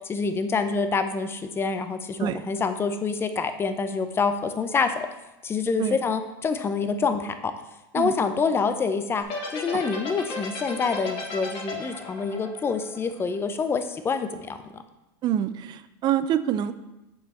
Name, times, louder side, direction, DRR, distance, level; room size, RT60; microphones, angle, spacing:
voice 1, 0.1-5.1 5.4-7.5 7.9-9.2 9.5-14.8, left 5 dB, 20° left, 9 dB, 0.6 m, -26 dB
sound 1, 9.2-13.6, left 3 dB, 45° left, 2.0 m, -34 dB
voice 2, 15.2-16.7, right 10 dB, 35° right, 13 dB, 0.4 m, -26 dB
6.8 x 5.4 x 4.2 m, 0.98 s
supercardioid pair, 120°, 12 cm